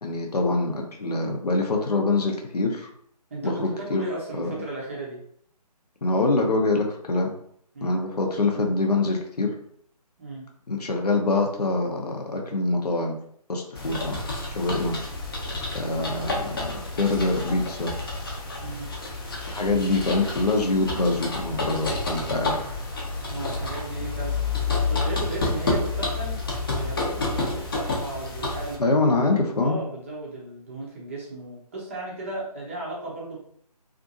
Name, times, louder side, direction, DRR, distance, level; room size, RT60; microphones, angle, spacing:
voice 1, 0.0-2.9 3.4-4.0 4.3-4.5 6.0-7.3 7.8-9.5 10.7-13.2 13.5-14.2 14.6-15.0 15.7-17.9 19.5-22.8 28.8-29.8, left 3 dB, 70° left, 1 dB, 0.7 m, -25 dB
voice 2, 3.3-5.2 7.7-8.0 10.2-10.4 18.6-18.9 23.3-24.4 24.7-26.4 26.8-33.4, right 2 dB, 20° right, -4 dB, 0.5 m, -35 dB
sound 1, 13.7-28.7, left 3 dB, 35° left, 0.6 m, -29 dB
2.6 x 2.4 x 2.6 m, 0.65 s
figure-of-eight pair, 155°, 20 cm